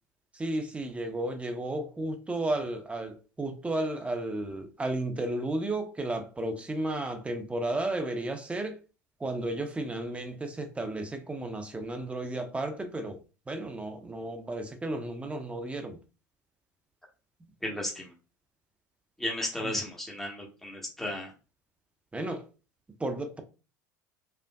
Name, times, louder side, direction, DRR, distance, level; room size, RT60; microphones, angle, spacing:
voice 1, 0.3-8.8 9.2-13.2 13.5-16.0 19.6-19.8 22.1-22.5 23.0-23.4, right 2 dB, 10° right, 0.8 m, -33 dB
voice 2, 17.6-18.1 19.2-21.3, left 1 dB, 5° left, 1.1 m, -34 dB
4.5 x 2.4 x 2.2 m
figure-of-eight pair, 70°, 10 cm